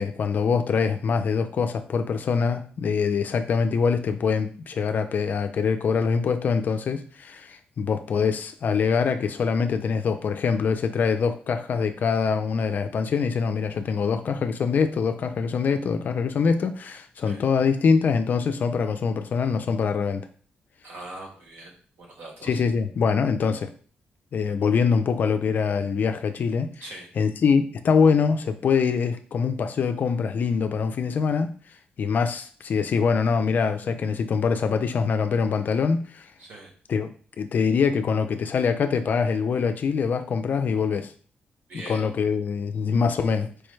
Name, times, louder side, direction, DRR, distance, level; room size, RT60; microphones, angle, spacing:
voice 1, 0.0-20.3 22.4-23.7 24.3-26.7 27.2-31.5 32.0-36.3 36.9-37.1 37.4-41.1 41.7-43.5, left 5 dB, 55° left, 8 dB, 0.4 m, -24 dB
voice 2, 20.8-21.7 22.0-22.6 26.8-27.1 36.4-36.7 41.7-42.0, right 2 dB, 80° right, 0 dB, 1.2 m, -41 dB
4.7 x 2.2 x 3.1 m, 0.44 s
cardioid pair, 105°, 4 cm